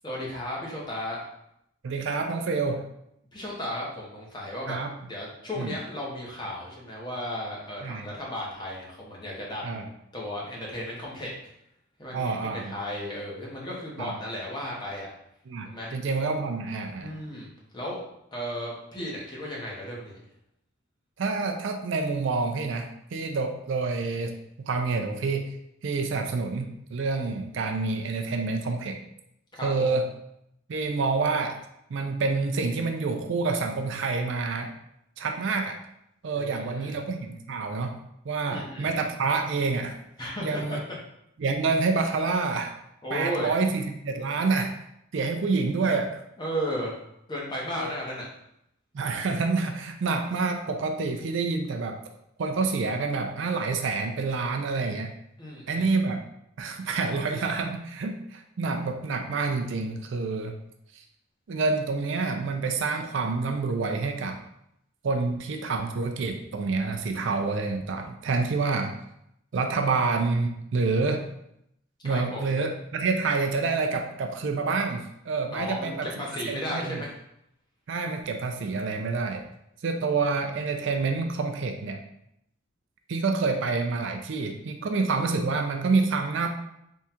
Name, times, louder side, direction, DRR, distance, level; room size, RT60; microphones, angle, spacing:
voice 1, 0.0-1.2 3.3-4.8 5.0-9.9 10.1-11.3 12.0-15.1 15.6-15.9 17.0-17.5 17.7-18.0 18.3-20.2 29.6-29.9 36.4-37.0 38.5-38.9 40.2-41.0 43.0-43.6 46.4-47.0 47.3-48.3 55.4-55.9 72.0-72.6 75.5-77.2, equal, 20° left, -4 dB, 0.8 m, -34 dB
voice 2, 1.8-2.9 4.7-4.9 5.6-5.7 7.8-8.1 9.6-9.8 12.1-12.7 14.0-14.1 15.5-17.1 21.2-24.3 24.6-25.5 25.8-29.0 29.6-30.1 30.7-31.6 31.9-34.7 35.2-35.8 36.2-38.0 38.2-40.0 40.4-40.8 41.4-42.7 43.1-44.8 45.1-46.2 47.8-47.9 48.9-52.0 52.4-55.1 55.7-56.2 56.6-60.5 61.0-61.1 61.5-64.4 65.0-68.9 69.5-71.2 72.0-76.1 76.5-77.0 77.9-79.4 79.8-82.0 83.1-86.5, right 4 dB, 60° right, 4 dB, 0.4 m, -27 dB
3.6 x 2.3 x 4.3 m, 0.78 s
head